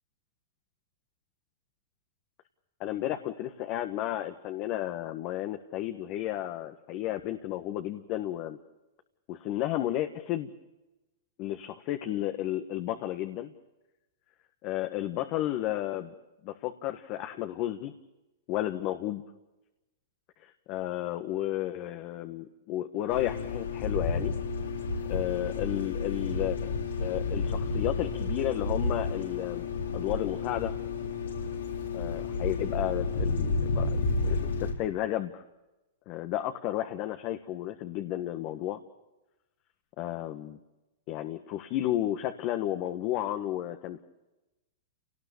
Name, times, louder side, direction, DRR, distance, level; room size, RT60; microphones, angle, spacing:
voice 1, 2.8-8.6 9.3-10.5 11.4-13.5 14.6-16.1 16.4-17.9 18.5-19.2 20.4-24.4 25.1-26.7 27.0-30.7 31.9-35.4 36.1-38.8 40.0-40.6 41.1-44.0, left 13 dB, 45° left, 7 dB, 1.5 m, -33 dB
sound 1, 23.1-34.7, left 4 dB, 85° left, 5.8 m, -31 dB
29.0 x 19.0 x 7.0 m, 1.0 s
hypercardioid pair, 125°, 0 cm